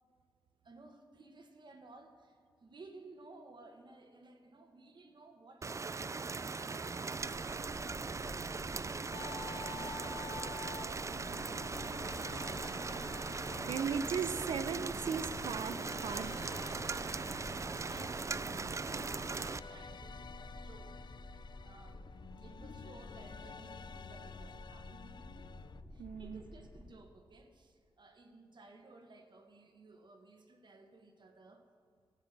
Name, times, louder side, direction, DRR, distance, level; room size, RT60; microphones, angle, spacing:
voice 1, 0.6-7.4 8.6-13.3 17.0-21.1 21.6-22.1 22.4-25.5 25.9-31.7, right 3 dB, 60° right, 5 dB, 1.4 m, -57 dB
Rain, 5.6-19.6, right 4 dB, 35° right, 0.4 m, -39 dB
sound 1, 7.1-26.9, left 1 dB, 20° left, 1.8 m, -51 dB
sound 2, 9.1-25.8, left 6 dB, 55° left, 0.4 m, -50 dB
voice 2, 13.6-16.4 26.0-26.4, right 6 dB, 85° right, 11 dB, 0.6 m, -37 dB
12.0 x 8.1 x 6.7 m, 2.2 s
cardioid pair, 60°, 9 cm